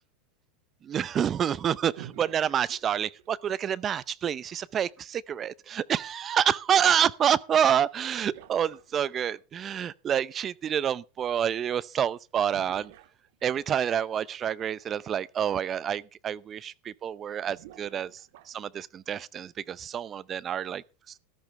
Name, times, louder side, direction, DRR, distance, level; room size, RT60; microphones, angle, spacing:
voice 1, 0.8-12.9 13.4-18.1 18.5-20.8, right 9 dB, 30° right, 0.6 m, -28 dB
sound 1, 2.0-3.4 7.4-7.5 8.2-9.4 12.5-13.8 15.2-15.3 15.7-15.8 17.5-18.7, right 12 dB, 65° right, 1.5 m, -50 dB
13.5 x 13.0 x 3.4 m
supercardioid pair, 120°, 0 cm